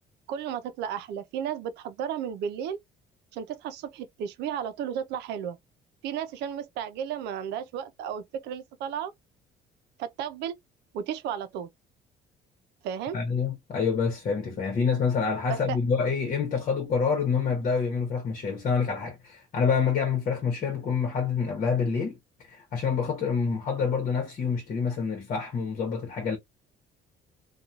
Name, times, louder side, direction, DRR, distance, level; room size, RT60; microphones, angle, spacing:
voice 1, 0.3-2.8 3.3-5.6 6.0-9.1 10.0-10.5 10.9-11.7 12.8-13.1 15.5-15.8, right 8 dB, 85° right, 0.5 m, -33 dB
voice 2, 13.1-22.1 22.5-26.4, left 6 dB, 50° left, 1.0 m, -27 dB
3.0 x 2.3 x 2.3 m
cardioid pair, 110°, 17 cm